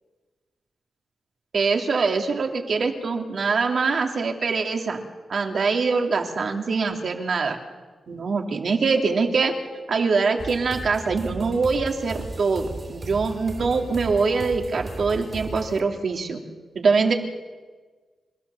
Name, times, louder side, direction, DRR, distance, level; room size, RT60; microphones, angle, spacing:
voice 1, 1.5-5.0 5.3-7.6 8.1-9.5 9.9-16.4 16.7-17.1, right 4 dB, 65° right, 3 dB, 2.6 m, -23 dB
sound 1, 10.4-15.8, right 3 dB, 45° right, 3.4 m, -36 dB
28.5 x 13.5 x 7.0 m, 1.4 s
cardioid pair, 60°, 0 cm